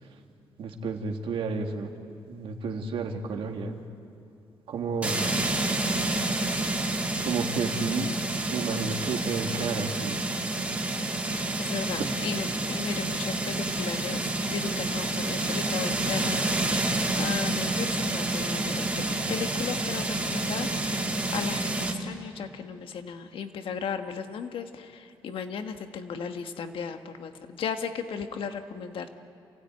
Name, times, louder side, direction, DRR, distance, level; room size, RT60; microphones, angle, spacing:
voice 1, 0.6-1.9 2.3-3.8 4.7-5.2 7.2-8.1 8.5-10.2 12.0-12.2, right 4 dB, 75° right, 3 dB, 2.1 m, -31 dB
sound 1, 5.0-21.9, right 2 dB, 15° right, 2.2 m, -29 dB
voice 2, 11.6-29.1, left 6 dB, 75° left, 7 dB, 1.5 m, -36 dB
27.5 x 16.0 x 9.2 m, 2.7 s
cardioid pair, 120°, 9 cm